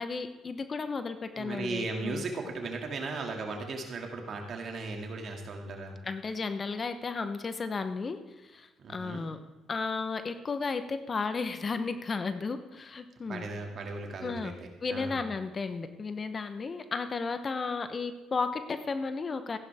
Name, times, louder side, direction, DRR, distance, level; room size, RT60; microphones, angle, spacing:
voice 1, 0.0-2.2 6.0-9.4 9.7-13.4 14.2-14.5 14.8-19.6, left 4 dB, 40° left, 10 dB, 1.0 m, -34 dB
voice 2, 1.4-6.0 8.8-9.3 13.3-15.2, right 3 dB, 55° right, 2 dB, 2.4 m, -37 dB
14.5 x 10.5 x 3.6 m, 1.2 s
supercardioid pair, 60°, 0 cm